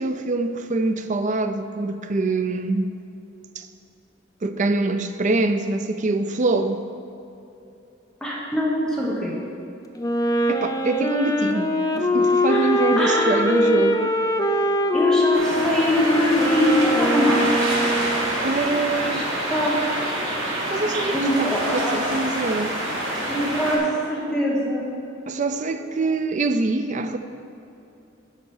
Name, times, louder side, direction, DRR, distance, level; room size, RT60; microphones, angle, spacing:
voice 1, 0.0-2.9 3.6-3.7 4.4-6.8 10.5-11.7 12.0-14.2 18.4-19.3 20.6-22.8 25.3-27.2, right 2 dB, 40° right, 9 dB, 0.5 m, -24 dB
voice 2, 8.2-9.3 12.5-12.7 13.0-13.8 14.9-17.7 18.8-19.2 19.5-19.8 21.1-22.0 23.3-24.9, equal, 5° left, -5 dB, 1.3 m, -23 dB
Wind instrument woodwind instrument, 10.0-18.4, left 1 dB, 20° left, 0.5 m, -22 dB
sound 1, 15.3-23.8, right 1 dB, 75° right, 2.0 m, -26 dB
9.8 x 4.1 x 7.1 m, 2.7 s
head